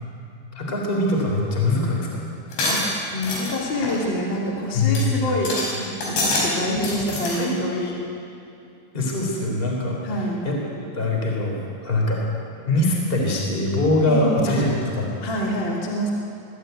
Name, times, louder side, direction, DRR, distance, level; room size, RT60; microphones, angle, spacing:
voice 1, 0.5-2.1 4.7-5.2 7.3-7.6 8.9-10.0 10.4-12.2 12.6-15.2, left 2 dB, 15° left, -1 dB, 3.5 m, -23 dB
sound 1, 2.5-3.5 3.8-4.0 4.5-4.6 5.0-5.1 5.3-5.7 6.0-6.5 6.8-7.4, left 2 dB, 80° left, 6.9 m, -25 dB
voice 2, 2.6-7.9 10.0-10.4 14.1-14.5 15.2-16.1, left 1 dB, 30° left, -2 dB, 3.0 m, -26 dB
23.0 x 14.0 x 9.3 m, 2.6 s
omnidirectional pair, 5.0 m